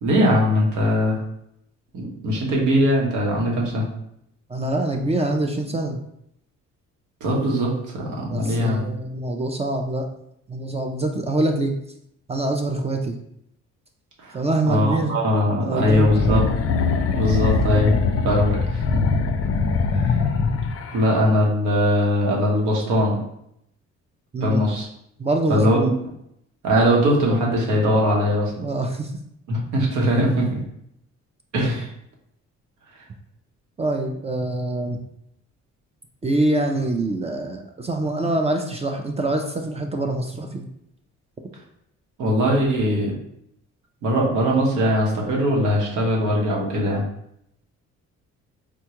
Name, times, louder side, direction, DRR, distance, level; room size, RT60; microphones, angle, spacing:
voice 1, 0.0-1.2 1.9-3.9 7.2-8.8 14.2-14.4 14.7-16.5 17.2-18.0 18.2-19.0 20.0-20.3 20.9-23.2 24.4-24.9 25.5-25.8 26.6-28.7 29.5-30.6 31.5-31.9 42.2-43.1 44.0-47.0, equal, 85° right, -2 dB, 1.0 m, -21 dB
voice 2, 4.5-6.0 8.3-10.1 10.5-11.8 12.3-13.2 14.3-15.1 15.6-16.5 24.3-24.6 25.2-25.9 28.6-29.1 33.8-35.0 36.2-40.7, right 2 dB, 20° right, 2 dB, 0.3 m, -25 dB
sound 1, 15.8-21.1, left 4 dB, 50° left, 0.4 m, -22 dB
3.5 x 2.3 x 2.9 m, 0.75 s
cardioid pair, 90°, 30 cm